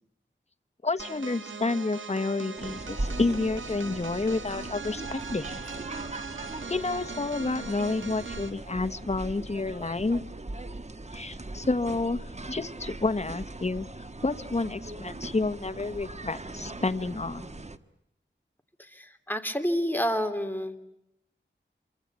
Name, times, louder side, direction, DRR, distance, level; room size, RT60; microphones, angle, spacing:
voice 1, 0.8-5.6 6.7-10.2 11.1-17.5, left 3 dB, 35° left, 10 dB, 1.2 m, -30 dB
sound 1, 1.0-8.6, right 4 dB, 75° right, 1.6 m, -40 dB
sound 2, 2.6-17.8, right 2 dB, 35° right, 1.4 m, -40 dB
voice 2, 18.8-20.8, equal, 10° left, 7 dB, 3.0 m, -29 dB
28.0 x 24.5 x 8.2 m, 0.83 s
wide cardioid pair, 70°, 20 cm